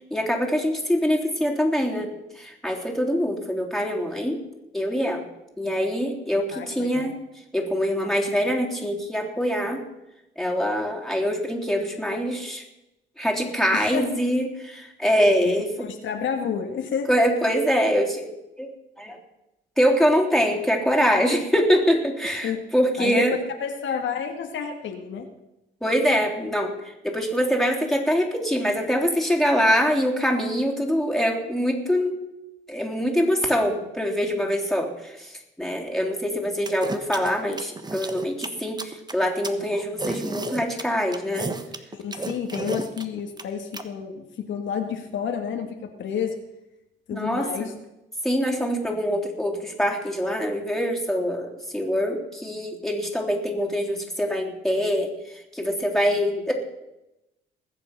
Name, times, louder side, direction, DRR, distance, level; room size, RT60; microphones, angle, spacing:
voice 1, 0.1-4.4 4.7-5.2 5.6-7.2 7.5-9.8 10.4-12.6 13.2-15.7 17.1-18.3 18.6-18.7 19.0-19.2 19.8-23.4 25.8-32.2 32.7-41.5 47.1-47.7 48.2-56.5, equal, ahead, 0 dB, 3.4 m, -24 dB
voice 2, 6.5-7.1 13.7-14.1 15.5-15.6 15.8-17.1 22.2-22.6 23.0-23.2 23.6-25.3 41.9-46.3 47.1-47.7, left 7 dB, 70° left, 4 dB, 1.9 m, -30 dB
sound 1, 36.7-43.8, right 3 dB, 20° right, 1.3 m, -32 dB
20.5 x 7.7 x 6.0 m, 0.92 s
cardioid pair, 90°, 20 cm